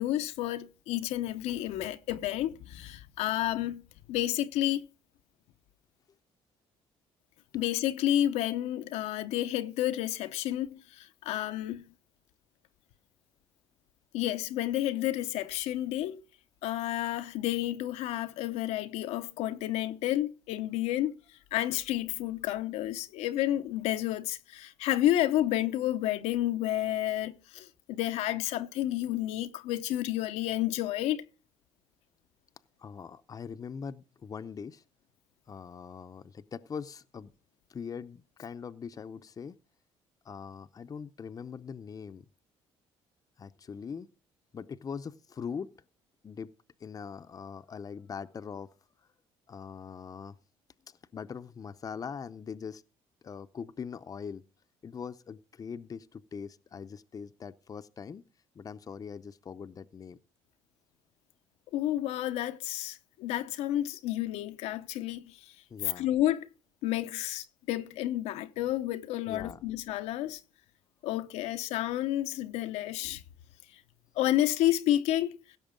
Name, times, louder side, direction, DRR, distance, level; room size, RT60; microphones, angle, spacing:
voice 1, 0.0-3.8 4.1-4.8 7.5-11.8 14.1-16.2 16.6-21.2 21.5-31.2 61.7-65.4 66.0-66.5 66.8-70.4 71.0-73.2 74.2-75.4, left 13 dB, 85° left, 0.8 m, -30 dB
voice 2, 32.8-34.8 35.5-37.3 37.7-39.6 40.2-42.2 43.4-44.1 44.5-45.7 46.2-46.5 46.8-48.7 49.5-50.4 50.9-52.8 53.2-54.4 54.8-58.2 58.5-60.2 65.7-66.1 69.3-69.6, left 6 dB, 35° left, 0.6 m, -42 dB
16.5 x 6.7 x 5.1 m
cardioid pair, 100°, 11 cm